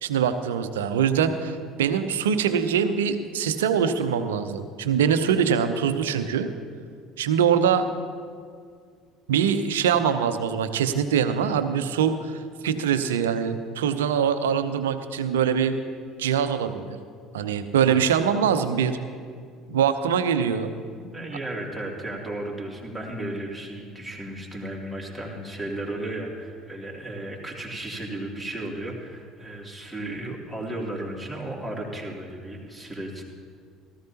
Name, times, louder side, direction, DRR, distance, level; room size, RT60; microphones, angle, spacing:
voice 1, 0.0-6.5 7.2-7.9 9.3-15.8 16.2-17.0 17.3-19.0 19.7-20.7, right 7 dB, 75° right, 10 dB, 0.7 m, -23 dB
voice 2, 21.0-33.2, right 1 dB, ahead, -3 dB, 2.9 m, -34 dB
17.5 x 14.0 x 2.9 m, 2.1 s
figure-of-eight pair, 60°, 0 cm